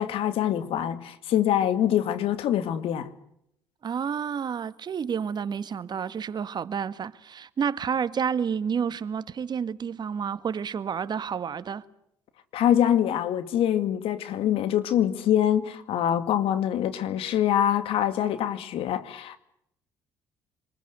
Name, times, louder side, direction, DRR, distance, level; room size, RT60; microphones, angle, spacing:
voice 1, 0.0-3.1 12.5-19.4, left 10 dB, 65° left, 2.2 m, -24 dB
voice 2, 3.8-11.8, right 7 dB, 45° right, 1.5 m, -30 dB
26.5 x 20.5 x 8.1 m
hypercardioid pair, 60°, 10 cm